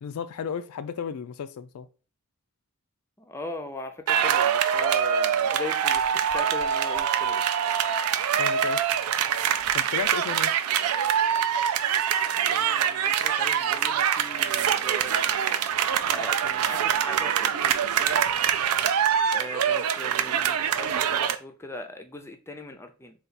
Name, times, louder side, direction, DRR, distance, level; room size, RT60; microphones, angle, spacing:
voice 1, 0.0-1.9 8.4-8.8 9.7-10.6, left 7 dB, 80° left, 0.4 m, -34 dB
voice 2, 3.2-7.5 12.2-15.5 16.1-18.2 19.3-23.1, left 2 dB, 10° left, 0.4 m, -40 dB
sound 1, 4.1-21.3, right 8 dB, 80° right, 0.4 m, -24 dB
3.9 x 2.3 x 4.1 m
head